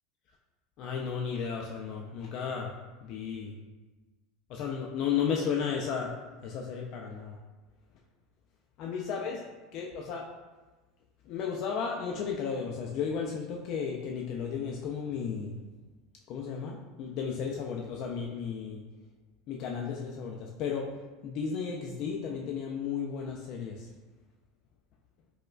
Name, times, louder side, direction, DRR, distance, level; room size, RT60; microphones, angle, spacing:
voice 1, 0.8-2.7 3.0-3.5 4.5-6.1 6.4-7.4 8.8-9.4 9.7-10.3 11.3-15.5 16.3-18.8 19.5-20.9 21.2-23.9, left 6 dB, 55° left, 0 dB, 0.3 m, -34 dB
4.2 x 2.2 x 2.3 m, 1.2 s
supercardioid pair, 130°, 0 cm